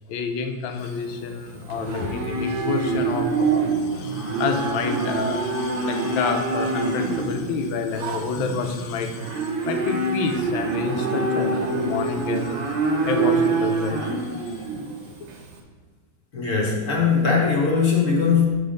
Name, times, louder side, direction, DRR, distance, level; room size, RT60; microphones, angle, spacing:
voice 1, 0.1-12.7 13.1-14.6, left 5 dB, 80° left, 5 dB, 1.4 m, -29 dB
Livestock farm animals working animals, 0.8-15.5, right 3 dB, 80° right, 1.6 m, -26 dB
voice 2, 16.3-18.5, left 5 dB, 45° left, -2 dB, 1.2 m, -20 dB
6.9 x 3.5 x 5.1 m, 1.5 s
omnidirectional pair, 2.1 m